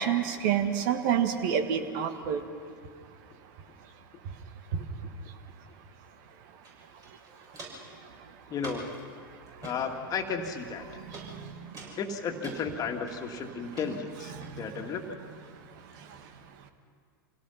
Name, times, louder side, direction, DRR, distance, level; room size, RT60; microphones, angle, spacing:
voice 1, 0.0-2.4 11.2-11.5 14.3-14.5, right 8 dB, 55° right, 7 dB, 1.9 m, -28 dB
Walk footsteps, 6.6-6.7 7.0-7.9 8.6-9.0 9.5-9.8 10.4-10.8 11.1-11.3 11.7-12.6 13.1-13.4 13.7-13.9 14.4-14.5, right 3 dB, 30° right, 7.0 m, -44 dB
voice 2, 8.5-8.8 9.6-10.9 12.0-15.2, left 5 dB, 30° left, 4 dB, 2.1 m, -34 dB
27.5 x 17.5 x 5.8 m, 2.1 s
hypercardioid pair, 95°, 12 cm